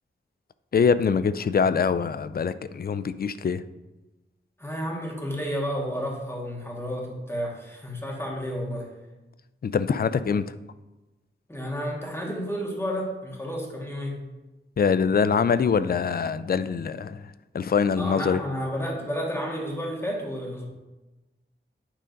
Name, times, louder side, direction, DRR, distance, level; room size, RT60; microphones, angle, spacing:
voice 1, 0.7-3.6 9.6-10.5 14.8-17.2 17.5-18.4, left 6 dB, 50° left, 14 dB, 0.4 m, -24 dB
voice 2, 4.6-8.9 11.5-14.2 18.0-20.7, equal, 10° left, -2 dB, 1.9 m, -31 dB
9.1 x 3.8 x 5.2 m, 1.1 s
wide cardioid pair, 75°, 21 cm